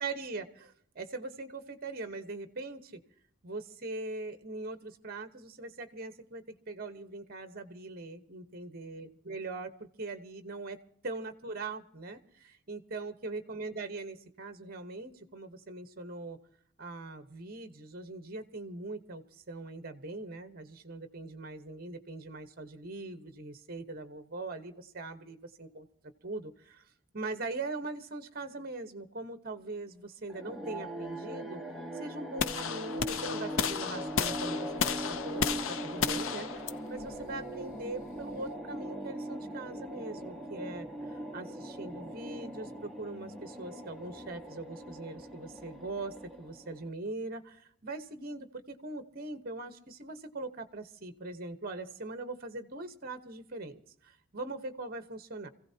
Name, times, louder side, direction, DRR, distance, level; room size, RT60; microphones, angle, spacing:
voice 1, 0.0-3.0 3.4-9.7 10.0-10.8 11.0-16.4 16.8-25.9 26.2-26.8 27.1-31.6 31.9-55.5, right 2 dB, 45° right, 9 dB, 1.1 m, -41 dB
sound 1, 30.3-46.9, equal, ahead, 1.1 m, -40 dB
sound 2, 32.4-38.5, left 6 dB, 65° left, 0.6 m, -34 dB
27.0 x 16.0 x 2.8 m, 0.65 s
head